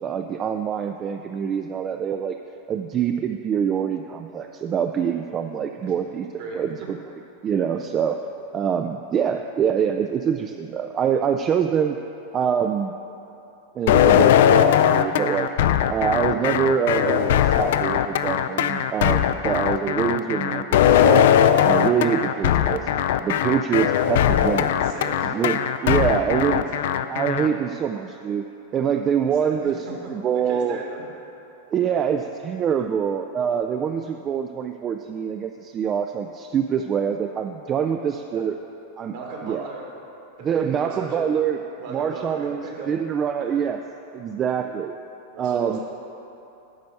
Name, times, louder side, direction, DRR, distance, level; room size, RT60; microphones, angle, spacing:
voice 1, 0.0-2.4 2.7-6.3 6.5-7.0 7.4-8.2 8.5-12.0 12.3-13.0 13.7-15.5 15.9-21.3 21.6-22.9 23.2-24.7 25.2-26.7 27.1-28.4 28.7-30.8 31.7-38.6 39.0-39.2 39.4-39.7 40.4-41.6 41.9-43.8 44.1-44.9 45.4-45.8, right 8 dB, 25° right, 6 dB, 0.3 m, -25 dB
sound 1, 13.9-27.5, left 10 dB, 55° left, 0.3 m, -19 dB
voice 2, 24.5-25.3 25.8-26.7 27.4-27.6 29.4-29.7 30.5-31.0 32.0-32.1 32.8-32.9 37.9-38.1 38.3-38.5 39.1-39.8 40.4-41.3 41.8-43.0 43.4-43.6 44.5-44.7 45.3-45.8, right 4 dB, 50° right, -1 dB, 1.7 m, -37 dB
8.8 x 5.2 x 6.6 m, 2.9 s
figure-of-eight pair, 90°, 0 cm